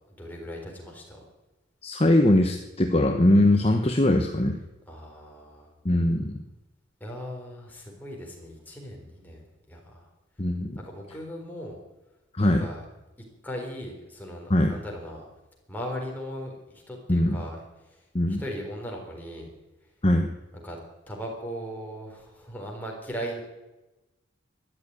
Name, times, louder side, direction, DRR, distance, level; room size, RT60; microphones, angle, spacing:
voice 1, 0.1-1.2 4.9-5.7 7.0-10.1 10.8-11.8 12.4-12.8 13.4-15.3 15.7-19.5 20.6-20.8 21.1-23.4, equal, 10° left, -1 dB, 3.9 m, -38 dB
voice 2, 1.8-4.6 5.8-6.4 10.4-10.8 12.4-12.7 14.5-14.8 17.1-17.4 18.1-18.4 20.0-20.3, left 1 dB, 30° left, 4 dB, 1.0 m, -21 dB
13.5 x 11.0 x 9.5 m, 1.0 s
head